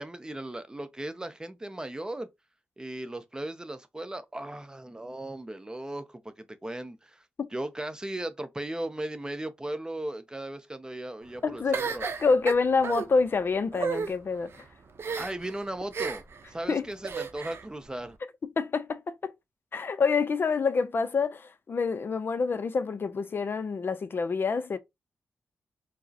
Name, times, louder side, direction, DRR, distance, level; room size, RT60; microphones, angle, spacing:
voice 1, 0.0-2.3 2.8-7.2 7.5-12.0 15.2-16.2 16.5-18.2, right 1 dB, 15° right, 0.5 m, -37 dB
voice 2, 11.4-14.5 16.7-16.8 18.6-19.3 19.7-24.8, left 4 dB, 50° left, 0.4 m, -27 dB
sound 1, 11.7-13.0 13.7-14.1 15.0-15.5 15.9-16.4 17.0-17.6, right 5 dB, 60° right, 0.6 m, -32 dB
4.7 x 2.0 x 2.7 m
cardioid pair, 80°, 5 cm